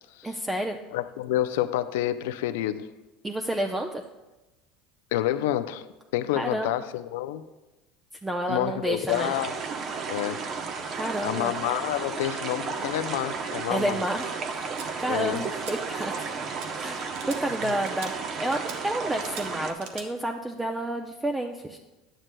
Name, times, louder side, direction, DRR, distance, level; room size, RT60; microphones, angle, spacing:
voice 1, 0.2-0.8 3.2-4.0 6.3-6.8 8.2-9.3 10.9-11.5 13.7-16.3 16.7-21.8, right 1 dB, 15° right, 4 dB, 0.5 m, -30 dB
voice 2, 0.9-2.9 5.1-5.9 6.1-7.5 8.5-9.5 10.1-10.5 11.2-14.0 15.1-15.4 17.6-17.7, left 13 dB, 80° left, 11 dB, 0.4 m, -28 dB
sound 1, 9.1-19.7, right 5 dB, 45° right, 0.9 m, -33 dB
sound 2, 14.8-14.9 15.4-15.8 16.0-16.3 16.6-16.7 17.1-17.4 17.9-18.1 18.5-18.8 19.2-19.5 19.8-20.1, right 6 dB, 70° right, 1.0 m, -41 dB
11.0 x 8.9 x 2.2 m, 1.1 s
hypercardioid pair, 90°, 0 cm